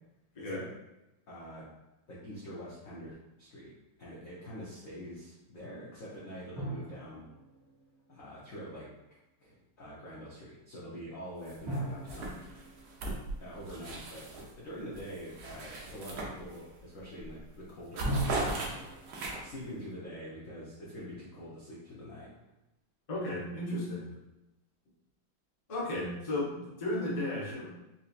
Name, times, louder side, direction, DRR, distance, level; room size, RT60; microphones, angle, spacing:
voice 1, 0.4-0.7 1.3-1.7 2.1-3.1 3.4-3.7 4.0-7.2 8.1-8.9 9.4-12.4 13.4-18.5 19.4-22.3, equal, 75° left, -7 dB, 0.7 m, -45 dB
sound 1, 6.6-8.8 11.7-14.6 18.0-19.9, right 1 dB, 40° right, 1.3 m, -41 dB
sound 2, 11.4-11.8 12.1-14.5 14.9-16.8 17.2-17.4 17.7-19.6, right 2 dB, 70° right, 0.9 m, -38 dB
voice 2, 23.1-24.1 25.7-27.7, left 1 dB, 40° left, -7 dB, 0.5 m, -34 dB
4.2 x 2.7 x 2.4 m, 0.96 s
omnidirectional pair, 2.4 m